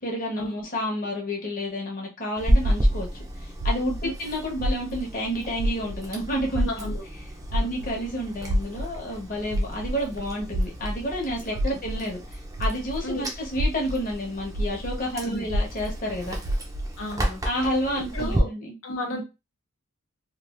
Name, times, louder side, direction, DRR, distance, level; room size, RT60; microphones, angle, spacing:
voice 1, 0.0-3.1 3.4-6.8 7.5-12.2 12.6-16.4 17.4-18.7 19.1-19.2, equal, 40° left, -1 dB, 1.0 m, -30 dB
Chewing mastication, 2.4-18.4, equal, 15° right, 0.5 m, -32 dB
sound 1, 2.6-5.3 5.5-13.1 13.5-17.0, equal, 85° right, 0.5 m, -29 dB
voice 2, 6.6-7.0 13.0-13.3 15.2-15.4 17.0-17.4 18.1-18.5 18.8-19.2, left 1 dB, 80° left, 2 dB, 0.8 m, -32 dB
3.1 x 2.4 x 2.5 m, 0.26 s
head